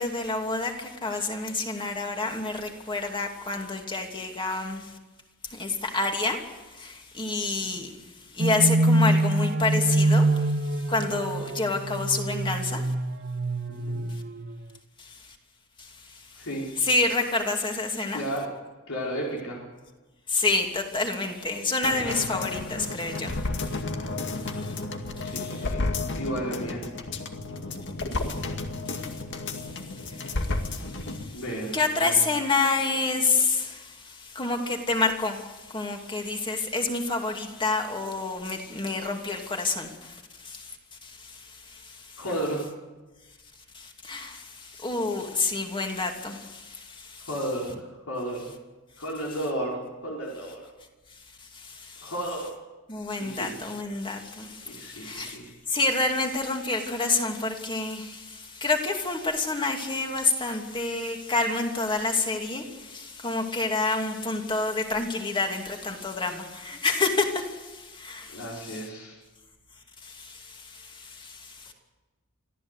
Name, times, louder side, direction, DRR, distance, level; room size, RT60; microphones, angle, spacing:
voice 1, 0.0-4.9 5.5-6.5 6.8-7.9 8.3-10.5 10.9-12.8 15.0-15.1 15.8-15.9 16.8-18.2 20.3-23.3 23.6-23.8 24.6-24.7 28.2-28.4 28.9-29.0 30.1-30.2 30.7-31.4 31.7-40.2 40.4-40.8 41.0-41.4 41.7-42.0 43.7-47.3 51.5-52.1 52.9-55.4 55.7-68.8 70.0-71.7, left 3 dB, 25° left, 3 dB, 2.8 m, -28 dB
sound 1, 8.4-14.6, right 1 dB, 50° right, 0.9 m, -25 dB
voice 2, 13.7-14.0 16.4-16.7 18.0-18.5 18.9-19.6 25.2-26.8 31.3-32.2 42.2-42.6 47.3-48.5 49.0-50.6 52.0-52.5 53.2-53.5 54.6-55.5 68.3-69.2, right 1 dB, 80° left, -3 dB, 4.9 m, -33 dB
sound 2, 21.8-31.3 31.6-31.7, left 2 dB, 55° left, 2.1 m, -32 dB
25.0 x 15.0 x 8.2 m, 1.2 s
head